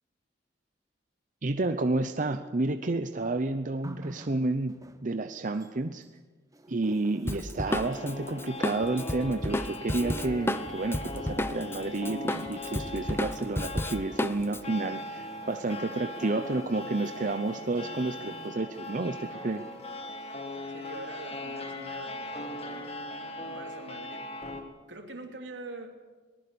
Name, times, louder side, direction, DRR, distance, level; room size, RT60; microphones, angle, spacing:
voice 1, 1.4-4.7 5.0-6.0 6.7-19.6, right 2 dB, 45° right, 8 dB, 0.8 m, -30 dB
sound 1, 3.8-6.2 6.5-21.2 22.1-22.2, right 1 dB, 20° right, 1.2 m, -52 dB
Drum kit, 7.3-11.8 12.0-14.6, left 1 dB, 15° left, 0.8 m, -31 dB
sound 2, 7.7-24.6, left 1 dB, 35° left, 2.2 m, -40 dB
voice 2, 20.7-24.3 24.9-25.9, right 2 dB, 85° right, 3 dB, 3.2 m, -44 dB
23.0 x 19.0 x 7.0 m, 1.3 s
head